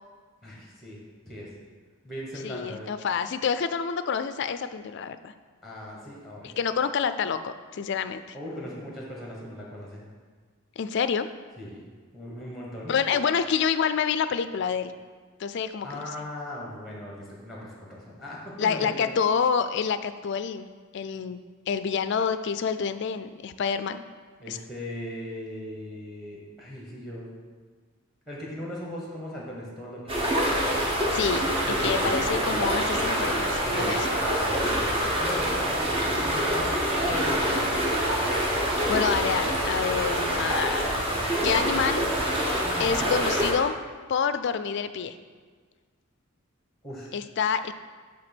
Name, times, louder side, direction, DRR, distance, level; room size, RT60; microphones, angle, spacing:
voice 1, 0.4-1.5 2.0-2.9 5.6-6.6 8.3-10.1 11.6-11.8 12.1-12.9 15.8-19.1 24.4-27.3 28.3-30.3 31.7-32.1 33.6-37.8 42.6-43.1 46.8-47.1, left 1 dB, ahead, -4 dB, 1.2 m, -38 dB
voice 2, 2.4-5.3 6.4-8.4 10.8-11.3 12.9-14.9 15.4-16.1 18.6-20.7 20.9-21.4 21.7-24.0 24.5-24.6 31.1-31.5 31.8-34.1 38.9-41.0 41.4-42.0 42.8-43.8 44.1-45.2 47.1-47.7, left 6 dB, 55° left, 12 dB, 0.3 m, -27 dB
sound 1, 30.1-43.5, equal, 25° right, 1.0 m, -26 dB
7.9 x 3.4 x 6.0 m, 1.6 s
head